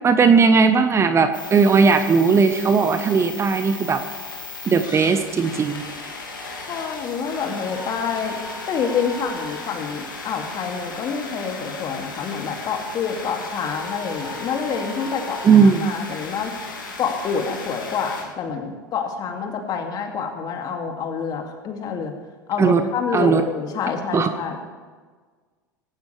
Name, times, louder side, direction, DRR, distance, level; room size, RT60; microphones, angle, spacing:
voice 1, 0.0-4.0 4.7-5.8 15.4-15.9 22.6-22.8 23.1-23.4 24.1-24.3, right 5 dB, 25° right, 9 dB, 1.1 m, -17 dB
sound 1, 1.3-18.2, left 3 dB, 75° left, 2.6 m, -35 dB
voice 2, 6.7-8.4 8.7-16.5 17.0-22.1 22.5-24.6, left 6 dB, 35° left, 3 dB, 2.5 m, -27 dB
18.0 x 17.5 x 3.4 m, 1.5 s
figure-of-eight pair, 75°, 11 cm